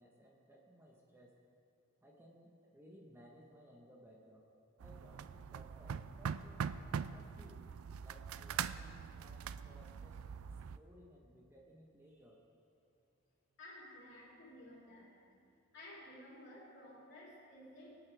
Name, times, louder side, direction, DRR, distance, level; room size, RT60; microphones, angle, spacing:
voice 1, 0.0-1.3 2.0-4.5 4.8-6.6 7.1-7.7 8.0-10.4 10.7-12.4, equal, 10° right, -2 dB, 1.2 m, -60 dB
sound 1, 4.8-10.8, right 7 dB, 85° right, 0.4 m, -42 dB
voice 2, 13.6-15.2 15.7-18.1, left 1 dB, 55° left, -6 dB, 4.0 m, -54 dB
24.5 x 9.7 x 3.5 m, 2.6 s
head